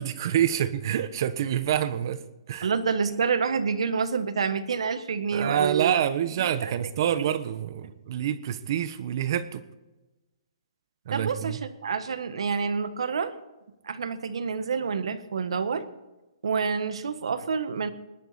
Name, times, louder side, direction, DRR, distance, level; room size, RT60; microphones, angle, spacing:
voice 1, 0.0-2.2 2.5-2.7 5.3-9.6 11.0-11.6, right 10 dB, 45° right, 13 dB, 1.1 m, -27 dB
voice 2, 2.6-6.0 6.4-6.7 7.2-7.3 11.1-13.3 13.8-15.8 16.4-17.9, right 5 dB, 80° right, 11 dB, 1.5 m, -28 dB
20.0 x 11.5 x 4.3 m, 1.0 s
hypercardioid pair, 165°, 3 cm